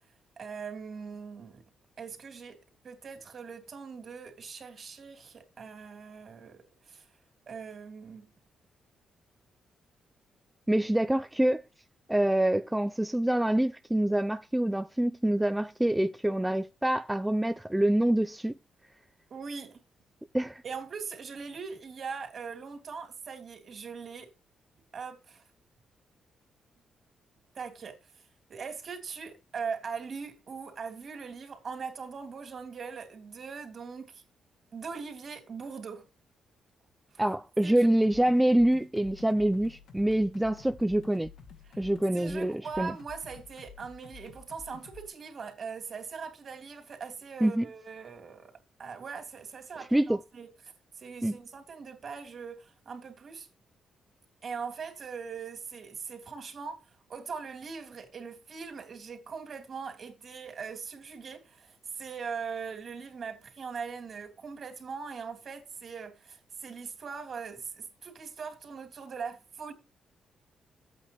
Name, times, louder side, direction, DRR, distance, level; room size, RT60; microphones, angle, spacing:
voice 1, 0.4-1.6 2.0-2.6 2.8-7.0 7.5-8.3 19.3-19.8 20.6-24.3 24.9-25.4 27.5-28.0 28.5-34.2 34.7-36.1 37.1-37.2 37.6-37.9 41.6-41.9 42.1-48.5 48.8-50.5 51.0-53.5 54.4-69.7, right 5 dB, 45° right, 2.9 m, -41 dB
voice 2, 10.7-11.6 12.1-18.5 20.3-20.6 37.2-41.3 41.8-43.0 47.4-47.7 49.9-50.2 51.2-51.4, right 1 dB, 5° right, 0.4 m, -26 dB
sound 1, 37.8-45.1, left 6 dB, 75° left, 2.0 m, -51 dB
12.5 x 8.5 x 3.0 m
cardioid pair, 120°, 0 cm